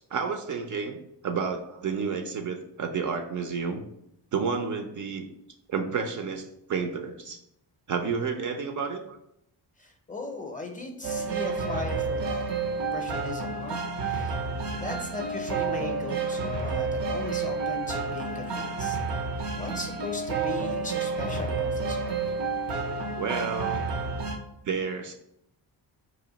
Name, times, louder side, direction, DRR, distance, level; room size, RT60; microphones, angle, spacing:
voice 1, 0.1-1.0 1.2-3.8 4.3-5.3 5.7-7.4 7.9-9.2 23.2-23.9 24.6-25.1, right 5 dB, 45° right, 5 dB, 0.4 m, -30 dB
voice 2, 9.8-12.4 12.8-14.4 14.7-19.0 19.6-22.2, left 2 dB, 20° left, 3 dB, 0.5 m, -38 dB
sound 1, 11.0-24.4, right 4 dB, 85° right, 0.7 m, -30 dB
3.0 x 2.5 x 3.9 m, 0.79 s
cardioid pair, 100°, 42 cm